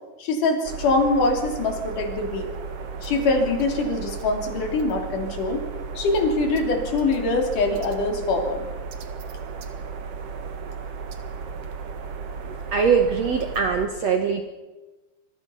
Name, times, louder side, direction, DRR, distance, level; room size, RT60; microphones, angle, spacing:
voice 1, 0.2-2.5 3.0-5.6 6.0-8.7, left 3 dB, 55° left, 3 dB, 4.3 m, -23 dB
sound 1, 0.6-13.9, right 5 dB, 50° right, 1.9 m, -35 dB
voice 2, 12.7-14.4, right 6 dB, 70° right, 5 dB, 1.5 m, -22 dB
26.5 x 21.5 x 5.7 m, 1.2 s
omnidirectional pair, 4.8 m